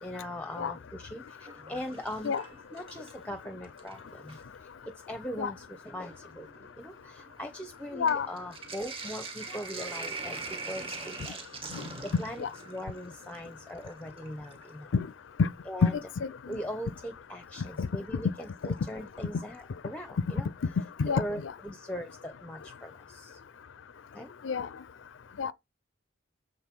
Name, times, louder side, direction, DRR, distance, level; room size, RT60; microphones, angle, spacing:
voice 1, 0.0-2.4 2.7-14.9 15.7-16.0 16.5-20.5 21.1-23.4 24.1-24.3, equal, 5° left, 0.8 m, -40 dB
Sink (filling or washing), 1.3-3.3 3.6-4.5 5.3-5.4 5.6-14.8 16.5-16.6 18.4-18.9 19.2-19.3 19.5-19.6, right 3 dB, 30° right, 1.5 m, -43 dB
voice 2, 7.9-8.3 11.7-11.8 12.4-12.5 14.9-15.1 15.4-15.5 15.8-15.9 17.8-17.9 21.0-21.2 24.4-24.7 25.4-25.5, left 5 dB, 75° left, 0.4 m, -26 dB
7.3 x 4.0 x 6.0 m
head